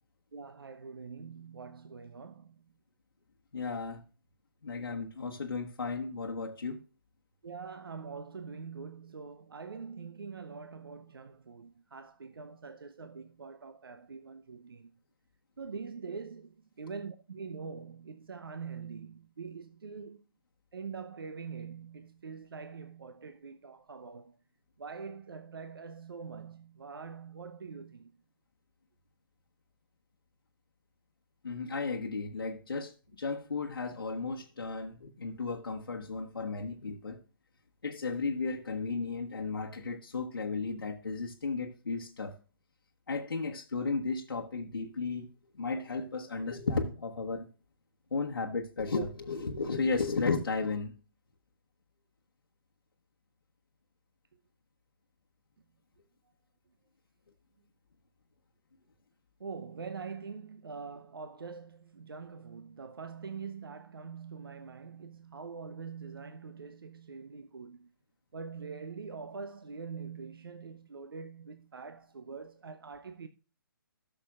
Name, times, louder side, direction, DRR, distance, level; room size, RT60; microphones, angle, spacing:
voice 1, 0.3-2.6 7.4-14.9 15.6-20.2 20.7-24.3 24.8-28.1 59.4-67.9 68.3-73.3, right 5 dB, 80° right, 0.7 m, -44 dB
voice 2, 3.5-4.0 4.6-6.8 31.4-37.2 37.8-42.3 43.1-45.3 45.5-47.5 48.1-50.9, left 4 dB, 85° left, 1.1 m, -34 dB
13.5 x 6.8 x 2.4 m
hypercardioid pair, 140°, 12 cm